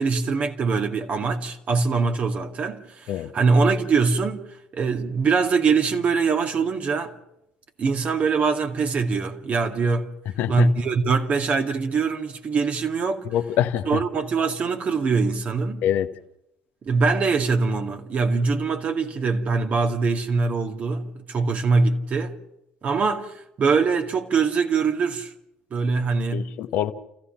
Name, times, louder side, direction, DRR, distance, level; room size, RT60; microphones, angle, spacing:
voice 1, 0.0-4.4 4.7-7.1 7.8-10.1 10.5-13.3 13.9-15.8 16.8-22.4 22.8-25.3 25.7-26.5, right 4 dB, 45° right, 2.1 m, -23 dB
voice 2, 13.3-14.0 15.8-16.1 26.3-26.9, left 11 dB, 65° left, 1.2 m, -24 dB
30.0 x 15.0 x 5.9 m
hypercardioid pair, 70°, 3 cm